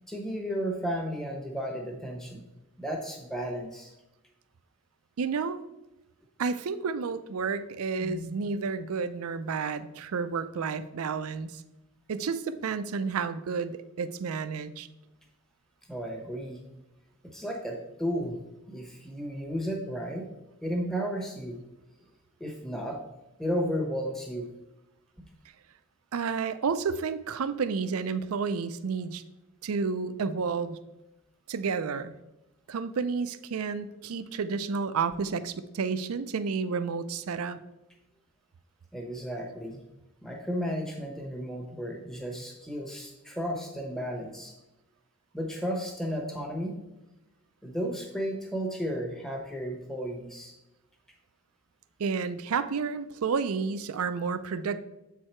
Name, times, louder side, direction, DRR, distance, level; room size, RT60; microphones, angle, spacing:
voice 1, 0.1-2.4 2.8-3.9 8.0-8.4 15.9-16.6 17.2-18.4 18.7-20.3 20.6-21.6 22.4-23.0 23.4-24.5 38.9-39.8 40.2-44.5 45.3-46.7 47.6-50.5, equal, ahead, 2 dB, 0.9 m, -33 dB
voice 2, 5.2-5.6 6.4-11.6 12.1-14.9 26.1-29.2 29.6-30.8 31.5-32.1 32.7-37.6 52.0-54.8, right 5 dB, 85° right, 13 dB, 0.4 m, -31 dB
7.5 x 4.6 x 4.4 m, 0.96 s
head